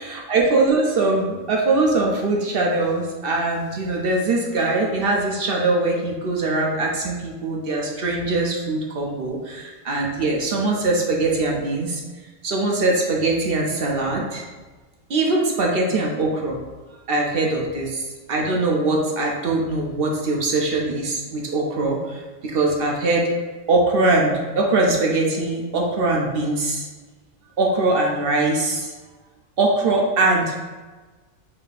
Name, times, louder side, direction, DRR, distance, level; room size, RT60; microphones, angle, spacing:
voice 1, 0.0-12.0 12.4-14.4 15.1-16.6 17.1-17.9 18.3-23.3 23.7-26.9 27.6-28.9 29.6-30.6, right 2 dB, 55° right, -1 dB, 0.7 m, -22 dB
4.1 x 2.7 x 3.9 m, 1.3 s
omnidirectional pair, 1.3 m